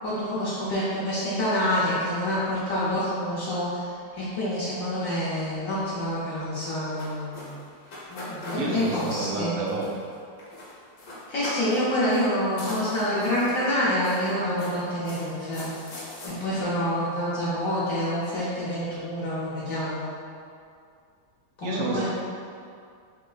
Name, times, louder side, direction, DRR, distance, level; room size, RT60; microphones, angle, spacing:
voice 1, 0.0-7.5 8.1-9.5 11.3-15.7 16.2-20.1 21.6-22.1, equal, 60° left, -9 dB, 0.9 m, -27 dB
sound 1, 6.5-10.1 10.4-10.7 11.0-11.8 12.1-12.3 12.6-13.6 14.0-16.3, left 1 dB, 85° left, 1.6 m, -40 dB
voice 2, 8.5-9.9 21.6-22.1, right 3 dB, 85° right, -3 dB, 1.3 m, -30 dB
6.0 x 2.0 x 2.3 m, 2.3 s
omnidirectional pair, 2.0 m